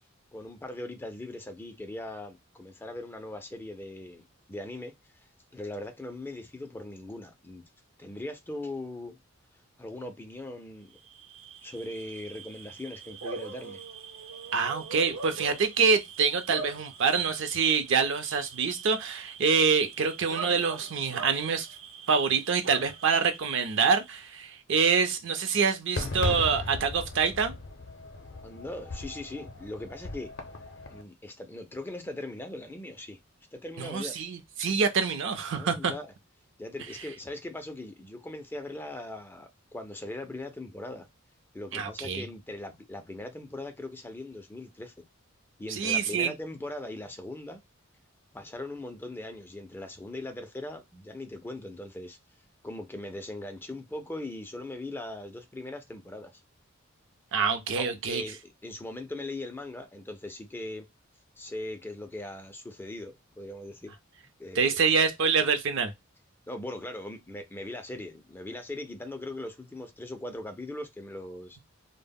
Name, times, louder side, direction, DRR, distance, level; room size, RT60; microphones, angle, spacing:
voice 1, 0.3-4.2 4.5-7.6 8.0-9.2 9.8-11.0 11.6-13.8 28.4-30.3 30.9-33.2 33.5-34.1 35.5-36.1 36.6-41.1 41.5-44.9 45.6-47.6 48.3-52.2 52.6-56.3 57.8-60.8 61.4-63.9 64.4-64.8 66.5-71.6, left 1 dB, 10° left, 0.3 m, -40 dB
Bark / Cricket, 11.0-24.3, right 5 dB, 90° right, 0.8 m, -43 dB
voice 2, 14.5-21.7 22.1-27.5 33.8-35.9 41.7-42.2 45.7-46.3 57.3-58.2 64.6-65.9, right 5 dB, 65° right, 0.5 m, -26 dB
Fireworks, 26.0-31.0, left 3 dB, 60° left, 0.5 m, -37 dB
2.1 x 2.0 x 3.4 m
head